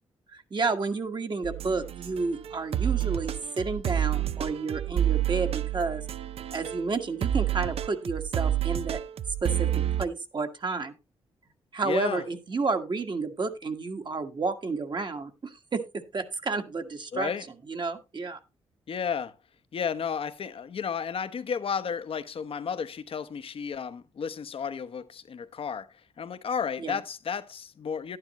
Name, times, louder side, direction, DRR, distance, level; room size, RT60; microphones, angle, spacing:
voice 1, 0.3-6.0 6.5-9.0 9.4-9.7 10.0-10.9 11.7-15.8 16.1-17.3 17.7-18.4 26.8-27.0, right 4 dB, 45° right, 1.6 m, -31 dB
sound 1, 1.4-6.9 7.2-10.1, right 11 dB, 65° right, 0.6 m, -29 dB
voice 2, 11.8-12.2 17.1-17.4 18.9-19.3 19.7-28.2, left 6 dB, 60° left, 0.9 m, -33 dB
11.5 x 9.7 x 3.0 m
cardioid pair, 60°, 11 cm